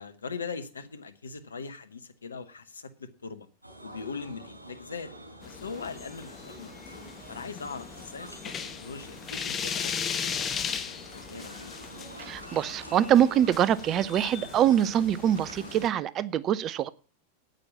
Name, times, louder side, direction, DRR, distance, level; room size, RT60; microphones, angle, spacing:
voice 1, 0.0-3.5 3.8-5.1 5.4-6.7 7.3-10.8 11.1-11.8, left 5 dB, 75° left, 1.1 m, -41 dB
sound 1, 3.6-15.9, right 1 dB, 85° right, 4.1 m, -47 dB
sound 2, 5.4-15.9, left 7 dB, 25° left, 1.1 m, -37 dB
sound 3, 10.3-12.2 12.6-15.7, right 1 dB, 5° right, 3.7 m, -58 dB
voice 2, 12.2-16.9, right 10 dB, 30° right, 0.6 m, -24 dB
9.2 x 8.8 x 7.1 m
figure-of-eight pair, 90°, 0 cm